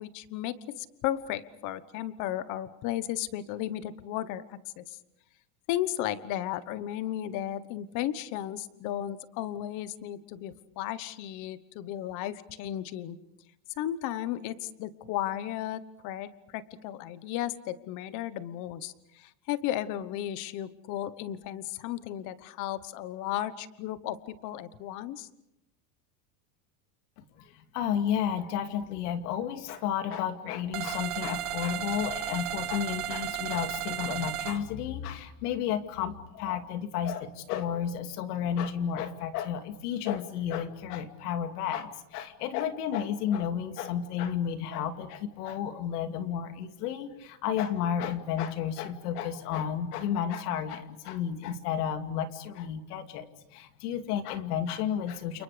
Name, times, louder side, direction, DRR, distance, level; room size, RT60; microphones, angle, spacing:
voice 1, 0.0-5.0 5.7-13.2 13.8-25.3, left 12 dB, 40° left, 15 dB, 1.2 m, -34 dB
voice 2, 27.7-55.4, left 9 dB, 80° left, 8 dB, 2.7 m, -32 dB
sound 1, 30.7-34.6, right 12 dB, 40° right, 1.9 m, -34 dB
30.0 x 29.0 x 5.1 m, 0.84 s
cardioid pair, 170°, 45 cm